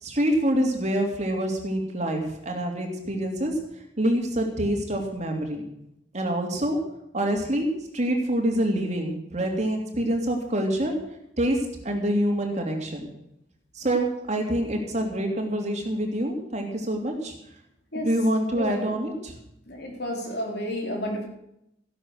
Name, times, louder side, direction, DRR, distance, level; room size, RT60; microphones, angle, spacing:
voice 1, 0.0-3.6 4.0-5.6 6.1-6.8 7.1-7.7 7.9-10.9 11.4-11.6 11.8-13.1 13.7-17.3 17.9-19.3, right 1 dB, 40° right, 2 dB, 3.0 m, -26 dB
voice 2, 18.5-19.0 19.7-21.3, equal, 60° left, 1 dB, 4.1 m, -31 dB
15.5 x 11.5 x 6.6 m, 0.81 s
head